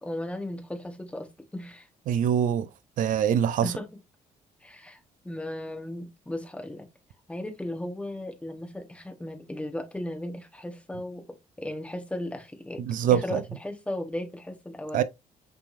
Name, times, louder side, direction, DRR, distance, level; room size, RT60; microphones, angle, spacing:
voice 1, 0.0-1.9 3.6-3.9 4.6-6.9 7.3-11.3 11.6-15.0, left 1 dB, 10° left, 1.2 m, -36 dB
voice 2, 2.1-2.7 3.0-3.7 12.9-13.4 14.9-15.0, right 9 dB, 65° right, 0.5 m, -24 dB
6.0 x 3.4 x 2.5 m
cardioid pair, 125°, 14 cm